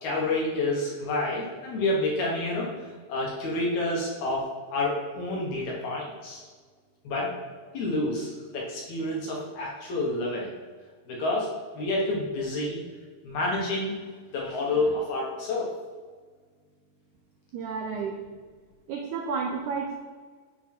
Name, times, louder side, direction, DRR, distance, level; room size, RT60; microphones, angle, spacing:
voice 1, 0.0-2.7 3.1-4.4 4.7-6.5 7.0-7.3 7.7-10.5 11.1-11.5 11.7-12.8 13.2-13.9 14.3-15.7, left 2 dB, 65° left, -3 dB, 2.2 m, -28 dB
voice 2, 17.5-18.2 18.9-19.9, right 5 dB, 80° right, 0 dB, 1.8 m, -31 dB
10.5 x 3.6 x 4.3 m, 1.5 s
omnidirectional pair, 4.2 m